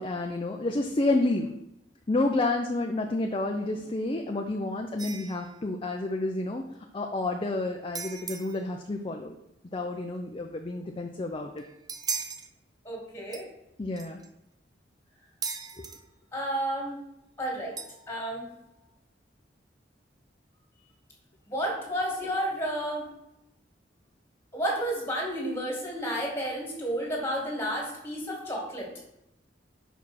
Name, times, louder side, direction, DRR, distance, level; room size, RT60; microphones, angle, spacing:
voice 1, 0.0-1.6 2.1-6.6 6.9-9.3 9.7-11.6 13.8-14.2 15.8-15.9, left 2 dB, 30° left, 3 dB, 0.5 m, -29 dB
sound 1, 5.0-5.5 7.9-8.6 11.6-12.5 13.3-13.4 14.0-14.3 15.4-16.0 17.8-18.3, right 5 dB, 20° right, 0.5 m, -37 dB
voice 2, 12.8-13.5 16.3-17.0 17.4-17.7 18.1-18.5 21.5-23.0 24.5-28.9, equal, 15° left, -1 dB, 2.2 m, -31 dB
5.5 x 4.8 x 6.2 m, 0.86 s
head